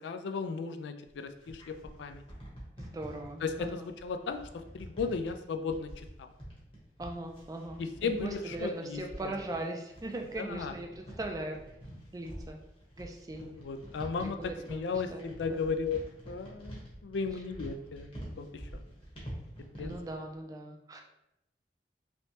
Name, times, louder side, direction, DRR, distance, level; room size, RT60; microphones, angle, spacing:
voice 1, 0.0-2.2 3.4-6.3 7.8-9.3 10.4-10.7 13.4-14.4 14.7-16.0 16.3-18.7 19.8-19.9, left 5 dB, 85° left, 7 dB, 0.3 m, -35 dB
sound 1, 1.1-20.1, equal, 30° left, 1.0 m, -47 dB
voice 2, 2.8-3.9 7.0-11.7 12.1-12.6 13.0-13.5 14.2-14.9 15.1-15.6 19.8-21.0, right 2 dB, 20° right, 3 dB, 0.3 m, -40 dB
3.2 x 3.1 x 2.9 m, 0.86 s
head